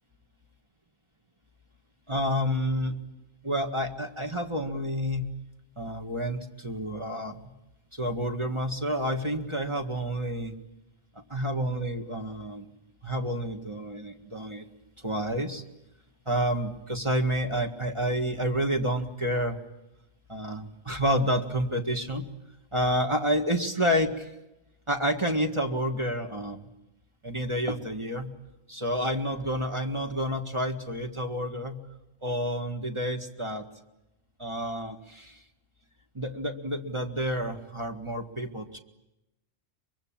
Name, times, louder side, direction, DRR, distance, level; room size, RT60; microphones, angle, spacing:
voice 1, 2.1-3.0 3.4-5.3 5.8-7.5 7.9-10.6 11.3-12.7 13.0-14.6 15.0-15.6 16.3-19.6 20.3-22.3 22.7-24.3 24.9-26.7 27.2-28.3 28.7-31.8 32.2-33.7 34.4-35.4 36.1-38.8, equal, 20° right, 4 dB, 1.8 m, -29 dB
24.0 x 23.0 x 8.8 m, 0.94 s
omnidirectional pair, 1.4 m